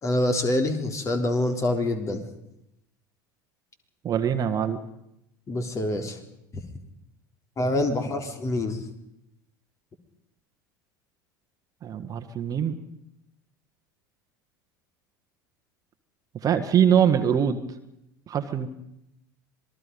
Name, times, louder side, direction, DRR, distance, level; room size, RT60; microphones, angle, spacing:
voice 1, 0.0-2.3 5.5-6.2 7.6-8.8, left 1 dB, 30° left, 6 dB, 3.6 m, -26 dB
voice 2, 4.0-4.8 11.8-12.8 16.4-17.6 18.3-18.7, right 8 dB, 35° right, 7 dB, 1.7 m, -23 dB
26.5 x 20.0 x 5.4 m, 0.81 s
figure-of-eight pair, 75°, 11 cm